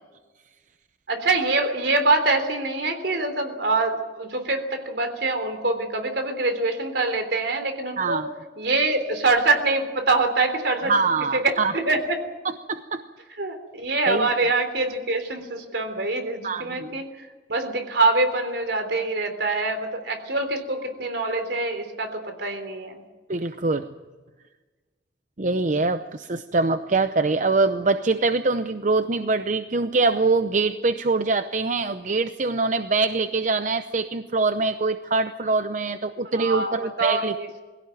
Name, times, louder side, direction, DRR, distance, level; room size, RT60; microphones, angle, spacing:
voice 1, 1.1-8.2 8.6-10.9 11.3-12.2 13.4-23.0 36.4-37.6, right 3 dB, 70° right, 7 dB, 3.5 m, -24 dB
voice 2, 8.0-8.3 10.9-11.7 12.7-13.0 14.1-14.3 16.4-16.9 23.3-23.9 25.4-37.3, right 3 dB, 45° right, 10 dB, 0.7 m, -24 dB
21.5 x 16.5 x 9.2 m, 1.3 s
head